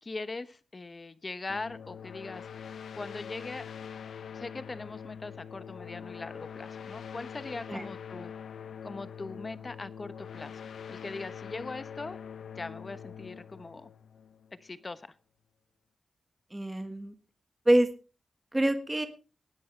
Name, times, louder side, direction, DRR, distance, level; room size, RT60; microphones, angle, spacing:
voice 1, 0.0-2.5 3.0-3.6 4.3-8.3 8.8-10.6 10.9-12.2 12.5-13.9 14.5-15.1, left 3 dB, 30° left, 13 dB, 1.0 m, -40 dB
sound 1, 1.5-14.8, left 7 dB, 85° left, 0.6 m, -44 dB
voice 2, 16.5-17.1 17.6-17.9 18.5-19.1, right 1 dB, 10° right, 8 dB, 1.4 m, -25 dB
19.5 x 10.5 x 3.3 m, 0.33 s
wide cardioid pair, 115°, 0 cm